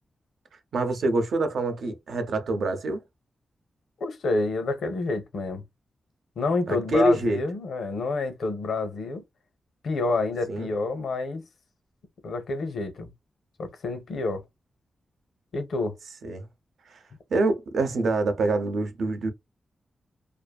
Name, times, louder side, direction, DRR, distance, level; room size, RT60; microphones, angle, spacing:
voice 1, 0.7-3.0 6.7-7.4 10.5-10.7 16.2-16.5 16.9-17.0 17.3-19.3, right 2 dB, 75° right, 0.6 m, -25 dB
voice 2, 4.0-5.6 6.4-9.2 9.8-11.4 12.2-13.1 13.6-14.4 15.5-16.0, left 3 dB, 75° left, 0.6 m, -28 dB
2.5 x 2.4 x 2.2 m
wide cardioid pair, 160°, 0 cm